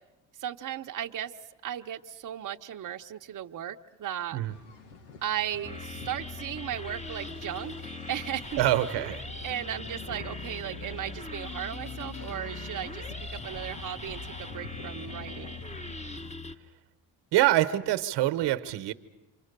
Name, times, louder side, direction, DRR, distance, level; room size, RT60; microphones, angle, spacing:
voice 1, 0.4-1.3 1.6-4.4 5.2-8.7 9.4-13.0 13.3-15.6, right 11 dB, 45° right, 3 dB, 1.0 m, -36 dB
sound 1, 4.5-16.4, left 4 dB, 90° left, 1.8 m, -49 dB
sound 2, 5.6-16.6, left 2 dB, 15° left, 1.4 m, -40 dB
voice 2, 8.6-9.2 17.3-18.9, right 14 dB, 70° right, 11 dB, 1.2 m, -25 dB
28.5 x 25.5 x 6.8 m, 1.0 s
supercardioid pair, 70°, 44 cm